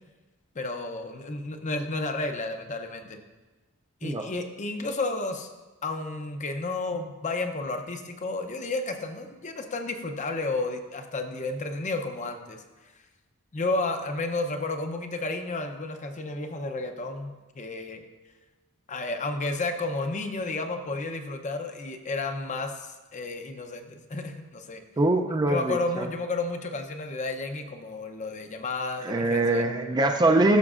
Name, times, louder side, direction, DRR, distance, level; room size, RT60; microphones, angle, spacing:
voice 1, 0.5-3.2 4.0-5.5 5.8-12.6 13.5-18.0 18.9-24.8 25.5-29.7, left 2 dB, 35° left, 6 dB, 0.6 m, -32 dB
voice 2, 25.0-26.1 29.0-30.6, right 2 dB, 20° right, 5 dB, 0.4 m, -23 dB
13.5 x 6.3 x 2.5 m, 1.2 s
head